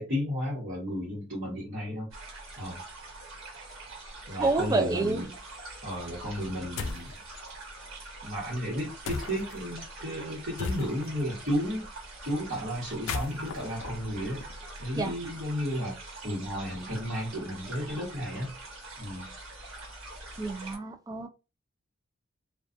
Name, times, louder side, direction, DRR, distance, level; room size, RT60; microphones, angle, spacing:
voice 1, 0.0-2.1 2.6-2.8 4.3-5.3 5.8-7.1 8.2-14.4 14.8-15.9 16.2-18.5 19.0-19.3, equal, 55° right, 1.3 m, -33 dB
sound 1, 2.1-20.8, right 2 dB, 70° right, 1.3 m, -44 dB
voice 2, 4.3-5.2 15.0-15.1 20.4-21.3, right 3 dB, 20° right, 0.3 m, -28 dB
sound 2, 6.8-7.1 9.0-9.6 10.6-11.2 12.9-14.8, left 4 dB, 80° left, 0.4 m, -36 dB
2.4 x 2.3 x 2.5 m
head